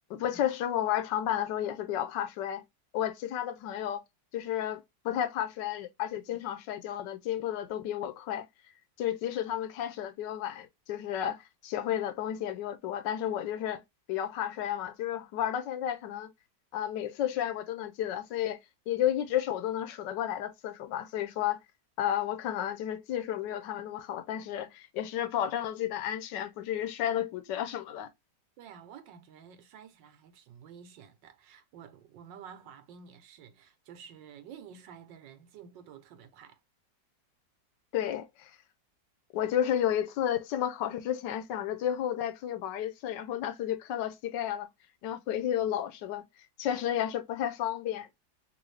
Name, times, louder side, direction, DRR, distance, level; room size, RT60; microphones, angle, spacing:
voice 1, 0.1-2.6 2.9-4.0 4.3-8.5 9.0-13.8 14.1-16.3 16.7-18.6 18.9-21.6 22.0-28.1 37.9-38.6 39.3-44.7 45.0-46.2 46.6-48.1, left 11 dB, 75° left, 1.3 m, -32 dB
voice 2, 28.6-36.6, right 7 dB, 90° right, 1.5 m, -51 dB
3.8 x 2.7 x 3.2 m
omnidirectional pair, 1.9 m